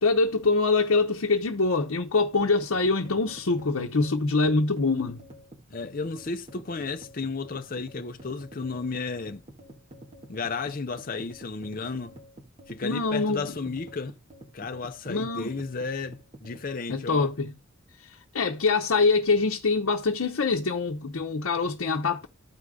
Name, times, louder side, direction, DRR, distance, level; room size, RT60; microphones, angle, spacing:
voice 1, 0.0-5.2 12.8-13.5 15.1-15.5 16.9-17.5 18.3-22.3, left 3 dB, 80° left, 0.8 m, -24 dB
sound 1, 2.4-16.7, right 1 dB, 30° right, 1.7 m, -49 dB
voice 2, 5.7-9.4 10.3-12.2 12.7-14.2 14.5-17.3, left 4 dB, 45° left, 0.6 m, -33 dB
14.0 x 4.8 x 2.3 m
head